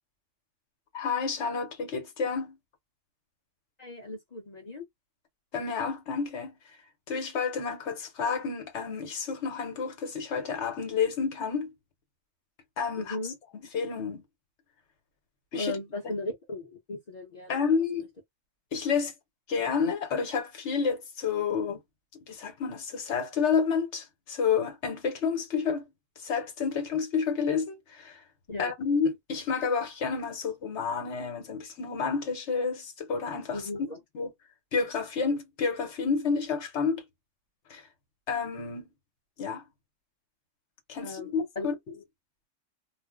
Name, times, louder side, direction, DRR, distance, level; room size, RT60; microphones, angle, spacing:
voice 1, 0.9-2.6 5.5-6.5 7.1-11.7 12.8-13.2 13.7-14.2 15.5-15.8 17.5-18.1 18.7-19.1 19.5-21.8 22.3-25.9 26.2-28.2 28.6-33.6 34.1-34.3 34.7-37.0 37.7-37.8 38.3-38.9 39.4-39.6 40.9-41.8, left 5 dB, 65° left, 1.1 m, -30 dB
voice 2, 3.8-4.8 13.0-13.4 15.6-17.6 28.5-28.7 33.5-34.0 41.0-41.7, left 2 dB, 40° left, 0.8 m, -37 dB
2.3 x 2.0 x 3.6 m
omnidirectional pair, 1.3 m